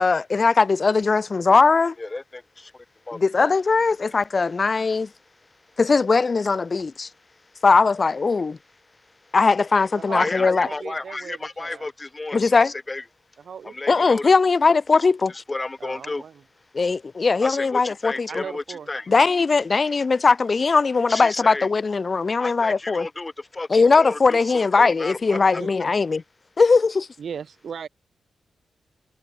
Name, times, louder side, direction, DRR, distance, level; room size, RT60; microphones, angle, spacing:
voice 1, 0.0-2.0 3.1-5.1 5.8-7.1 7.6-8.6 9.3-10.7 12.3-12.7 13.9-15.3 16.7-18.4 19.1-23.1 23.7-26.2 26.6-27.1, left 4 dB, 40° left, 0.3 m, -19 dB
voice 2, 3.1-3.5 10.1-13.0 13.7-14.3 15.3-16.2 17.4-19.0 21.1-21.7 22.4-25.6, left 2 dB, 25° left, 3.0 m, -32 dB
voice 3, 10.0-11.9 13.4-14.1 15.8-16.3 18.3-19.3 25.3-25.7 27.2-27.9, right 7 dB, 65° right, 7.4 m, -37 dB
cardioid pair, 80°, 0 cm